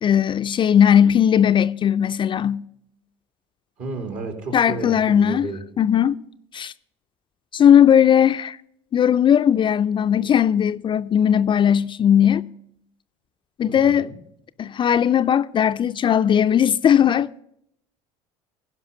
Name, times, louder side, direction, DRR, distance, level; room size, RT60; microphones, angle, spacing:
voice 1, 0.0-2.6 4.5-5.5 5.8-6.2 6.5-6.7 7.5-8.6 8.9-12.5 13.6-14.1 14.6-17.3, left 9 dB, 35° left, 0.4 m, -18 dB
voice 2, 3.8-5.6 13.7-14.1, right 3 dB, 60° right, 2.7 m, -32 dB
15.5 x 5.5 x 7.3 m
supercardioid pair, 85°, 15 cm